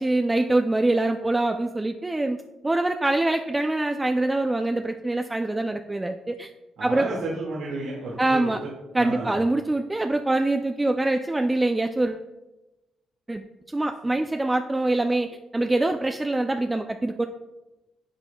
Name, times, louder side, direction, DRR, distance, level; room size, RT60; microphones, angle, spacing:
voice 1, 0.0-6.5 6.8-7.1 8.2-8.6 8.9-12.2 13.3-17.3, right 2 dB, 15° right, 5 dB, 0.4 m, -24 dB
voice 2, 6.8-9.3, right 2 dB, 75° right, -5 dB, 2.0 m, -32 dB
10.5 x 7.0 x 2.3 m, 1.0 s
cardioid pair, 100°, 0 cm